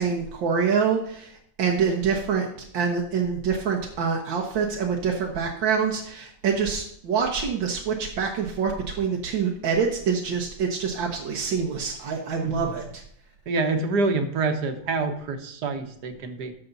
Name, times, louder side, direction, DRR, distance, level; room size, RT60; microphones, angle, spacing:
voice 1, 0.0-13.0, right 6 dB, 85° right, 0 dB, 1.9 m, -26 dB
voice 2, 13.5-16.5, right 3 dB, 60° right, 7 dB, 1.6 m, -26 dB
11.5 x 6.8 x 4.0 m, 0.69 s
omnidirectional pair, 2.0 m